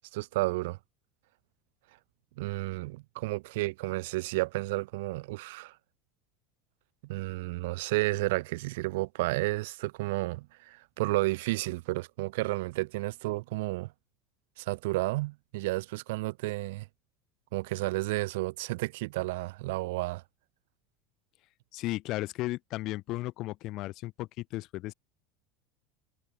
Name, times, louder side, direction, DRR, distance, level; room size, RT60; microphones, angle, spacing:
voice 1, 0.1-0.8 2.4-5.8 7.0-13.9 14.6-16.9 17.5-20.2, right 21 dB, 80° right, 3.1 m, -32 dB
voice 2, 21.7-24.9, left 18 dB, 50° left, 1.8 m, -35 dB
supercardioid pair, 140°, 0 cm